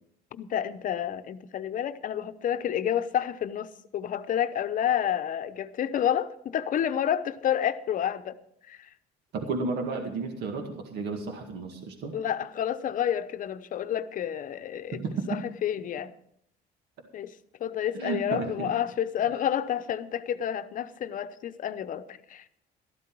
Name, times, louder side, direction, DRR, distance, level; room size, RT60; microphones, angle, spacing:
voice 1, 0.3-8.4 8.7-8.8 12.1-16.1 17.1-17.3 17.6-22.4, left 10 dB, 50° left, 12 dB, 0.8 m, -29 dB
voice 2, 9.3-12.1 14.9-15.5 17.9-18.7, right 4 dB, 75° right, 4 dB, 2.0 m, -32 dB
13.0 x 12.5 x 4.6 m, 0.70 s
cardioid pair, 110°, 17 cm